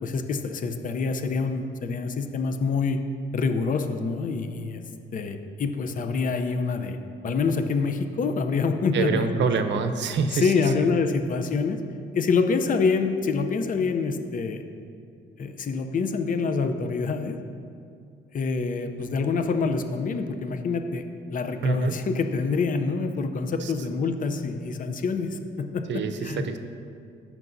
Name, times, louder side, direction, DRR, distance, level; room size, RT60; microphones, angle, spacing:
voice 1, 0.0-3.0 3.3-4.8 5.1-7.0 7.2-9.3 10.1-11.8 12.1-14.6 15.4-17.4 18.3-21.0 21.3-26.5, left 4 dB, 45° left, 7 dB, 0.6 m, -26 dB
voice 2, 8.9-10.5 10.8-10.9 21.6-22.0 23.6-23.7 25.9-26.6, right 5 dB, 65° right, 8 dB, 0.7 m, -26 dB
15.0 x 6.0 x 2.7 m, 2.4 s
cardioid pair, 90°, 20 cm